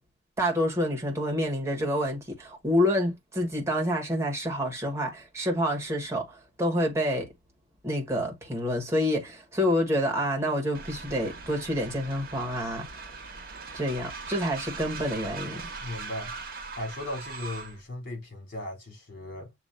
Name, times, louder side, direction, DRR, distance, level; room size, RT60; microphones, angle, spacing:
voice 1, 0.4-7.3 7.8-12.9 13.7-15.6, equal, 15° right, 1.5 m, -28 dB
Train, 10.7-17.8, right 4 dB, 50° right, 1.3 m, -40 dB
voice 2, 15.8-16.3 16.8-19.5, left 1 dB, 50° left, 3.3 m, -37 dB
7.2 x 2.8 x 2.6 m
head